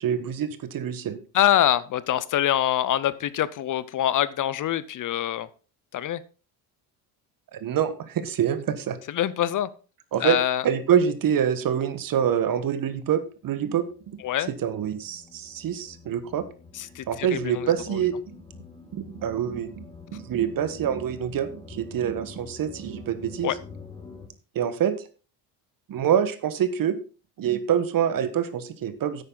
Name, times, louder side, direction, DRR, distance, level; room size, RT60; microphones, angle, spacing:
voice 1, 0.0-1.2 7.5-9.0 10.1-10.4 10.6-13.8 14.6-16.4 17.1-18.1 18.9-19.8 20.1-23.5 24.5-24.9 25.9-27.0 27.4-29.2, right 9 dB, 50° right, 13 dB, 1.4 m, -26 dB
voice 2, 1.3-5.5 5.9-6.2 9.1-9.7 10.2-10.6 14.2-14.5 16.7-18.0 23.4-23.6, left 11 dB, 45° left, 18 dB, 0.7 m, -25 dB
sound 1, 13.5-24.3, left 4 dB, 15° left, 3.1 m, -46 dB
10.0 x 8.9 x 3.9 m, 0.35 s
cardioid pair, 110°, 44 cm